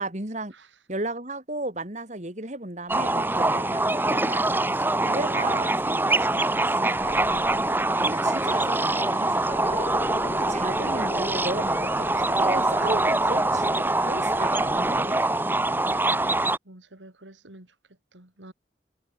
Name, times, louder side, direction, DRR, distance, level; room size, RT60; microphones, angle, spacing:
voice 1, 0.0-0.5 0.9-4.6 5.0-7.5 8.0-15.2, right 2 dB, 40° right, 3.8 m, -35 dB
sound 1, 2.9-16.6, right 2 dB, 10° right, 1.7 m, -24 dB
sound 2, 7.0-15.0, left 1 dB, 30° left, 1.1 m, -39 dB
voice 2, 16.6-17.7 18.1-18.5, right 1 dB, 90° right, 3.5 m, -49 dB
head